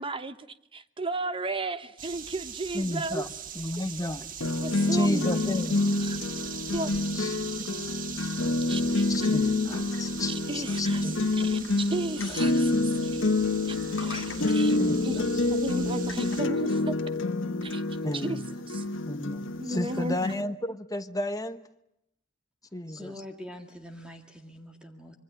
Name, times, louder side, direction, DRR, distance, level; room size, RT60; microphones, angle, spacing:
voice 1, 0.0-3.3 4.6-5.3 6.0-6.2 6.7-6.9 8.7-9.1 10.3-13.2 13.7-14.8 15.0-17.0 17.6-17.8 18.1-18.4 18.7-18.8 19.6-20.3, right 2 dB, 25° right, 1.0 m, -34 dB
sound 1, 2.0-16.4, right 7 dB, 45° right, 1.3 m, -41 dB
voice 2, 2.7-4.2 4.9-6.0 7.2-7.3 7.9-8.0 9.1-11.5 14.8-15.2 18.0-18.4 19.1-21.6 22.7-23.1, left 1 dB, 20° left, 1.1 m, -33 dB
sound 2, 4.4-20.4, left 2 dB, 75° left, 1.4 m, -28 dB
voice 3, 23.0-25.2, left 1 dB, 5° right, 2.0 m, -44 dB
25.5 x 23.5 x 7.9 m
head